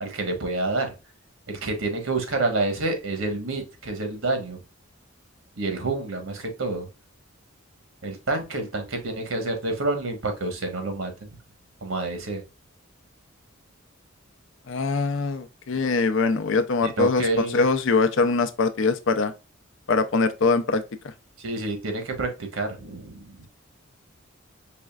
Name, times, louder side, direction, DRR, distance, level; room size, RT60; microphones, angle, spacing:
voice 1, 0.0-0.9 1.5-4.6 5.6-6.9 8.0-11.1 11.8-12.4 17.0-17.6 21.4-23.4, right 2 dB, 75° right, 1.2 m, -28 dB
voice 2, 14.7-19.3 19.9-21.1, left 4 dB, 65° left, 0.5 m, -23 dB
5.0 x 3.2 x 2.3 m
head